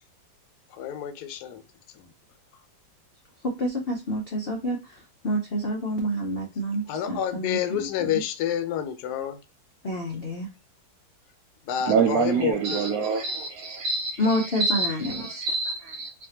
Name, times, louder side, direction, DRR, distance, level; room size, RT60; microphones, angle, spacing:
voice 1, 0.7-1.6 1.9-2.1 6.9-9.4 11.7-12.9, left 10 dB, 70° left, 1.0 m, -29 dB
voice 2, 3.4-4.8 5.2-8.1 9.8-10.5 14.2-15.4, equal, 85° left, 0.5 m, -28 dB
voice 3, 11.9-16.1, right 5 dB, 80° right, 0.8 m, -26 dB
4.2 x 2.6 x 2.7 m
omnidirectional pair, 2.1 m